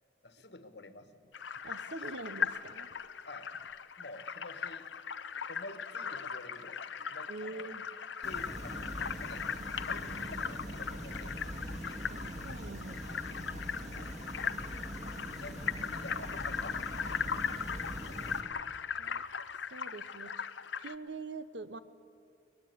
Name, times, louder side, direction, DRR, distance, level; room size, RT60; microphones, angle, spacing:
voice 1, 0.2-1.4 3.2-3.5 4.0-4.9 5.5-6.8 7.1-7.7 8.2-9.5 9.8-11.4 11.8-13.5 13.9-14.1 15.4-17.3, left 2 dB, 65° left, 11 dB, 1.5 m, -50 dB
sound 1, 1.3-20.9, left 6 dB, 80° left, 0.9 m, -39 dB
voice 2, 1.6-2.9 7.3-7.9 12.1-13.0 19.0-19.2 19.7-20.3 20.8-21.8, right 3 dB, 75° right, 13 dB, 1.1 m, -44 dB
sound 2, 8.2-18.4, equal, 40° right, 3.0 m, -43 dB
23.0 x 20.0 x 9.5 m, 2.4 s
head